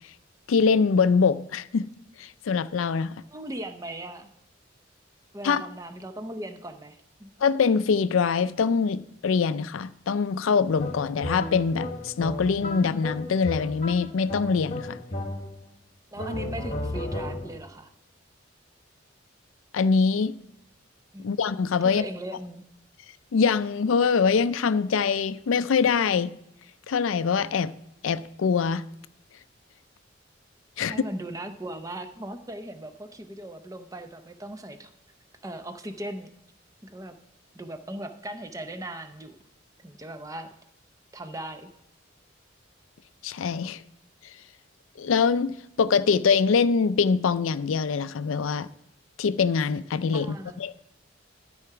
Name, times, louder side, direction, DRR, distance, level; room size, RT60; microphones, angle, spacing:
voice 1, 0.5-1.9 2.2-3.2 5.4-5.7 7.4-15.0 19.7-20.3 21.2-22.0 23.3-26.3 26.9-27.7 28.0-28.9 30.8-31.0 43.2-43.8 45.0-48.7 49.2-50.8, left 5 dB, 85° left, 0.4 m, -24 dB
voice 2, 3.3-4.3 5.3-7.3 16.1-17.9 21.1-21.3 21.8-22.7 30.8-34.9 35.4-36.3 36.8-37.2 37.5-39.4 39.8-40.5 41.1-41.7 50.1-50.6, right 1 dB, 15° right, 0.6 m, -38 dB
sound 1, 10.8-15.7 16.2-17.7, left 1 dB, 35° left, 1.2 m, -34 dB
13.0 x 4.8 x 5.8 m
head